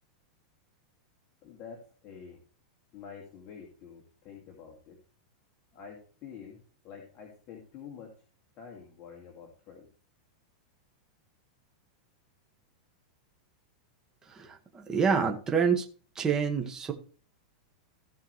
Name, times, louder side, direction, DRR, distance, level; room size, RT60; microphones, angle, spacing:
voice 1, 1.4-2.4 2.9-5.0 5.7-8.2 8.6-9.9, left 6 dB, 35° left, 0 dB, 2.4 m, -48 dB
voice 2, 14.3-15.8 16.1-16.9, right 6 dB, 15° right, 2 dB, 1.7 m, -27 dB
16.0 x 6.1 x 3.3 m, 0.38 s
supercardioid pair, 140°, 4 cm